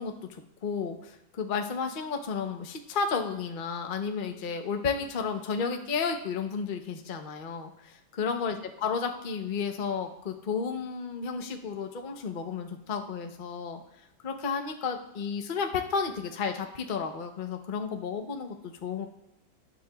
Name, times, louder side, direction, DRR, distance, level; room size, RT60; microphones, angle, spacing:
voice 1, 0.0-13.8 14.2-19.1, left 5 dB, 45° left, 4 dB, 0.6 m, -32 dB
19.0 x 9.6 x 2.4 m, 0.87 s
omnidirectional pair, 2.2 m